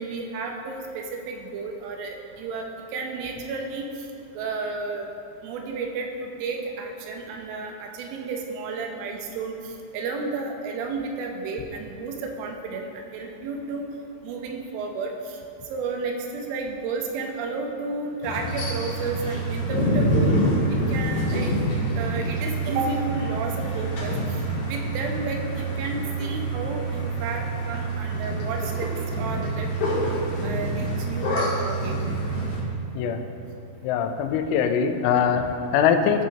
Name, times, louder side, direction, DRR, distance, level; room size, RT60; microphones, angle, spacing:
voice 1, 0.0-2.7 2.9-3.9 4.3-5.1 5.4-13.9 14.2-15.4 15.7-20.4 20.9-21.5 22.0-24.2 24.6-28.9 29.2-30.0 30.4-32.0, right 4 dB, 85° right, 2 dB, 3.3 m, -32 dB
sound 1, 18.2-32.6, right 1 dB, 60° left, 2.1 m, -26 dB
voice 2, 33.8-36.3, left 7 dB, 90° left, 6 dB, 3.1 m, -22 dB
14.5 x 6.3 x 2.8 m, 2.6 s
omnidirectional pair, 5.5 m